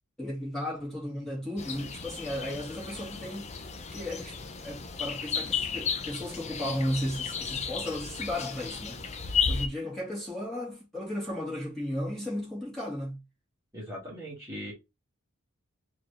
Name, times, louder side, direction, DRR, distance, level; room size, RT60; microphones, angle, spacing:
voice 1, 0.2-3.5 3.9-9.0 9.5-13.2, left 1 dB, ahead, 2.1 m, -35 dB
sound 1, 1.6-9.7, left 6 dB, 30° left, 0.5 m, -34 dB
voice 2, 13.7-14.7, equal, 15° right, 1.7 m, -39 dB
4.3 x 2.8 x 3.2 m
head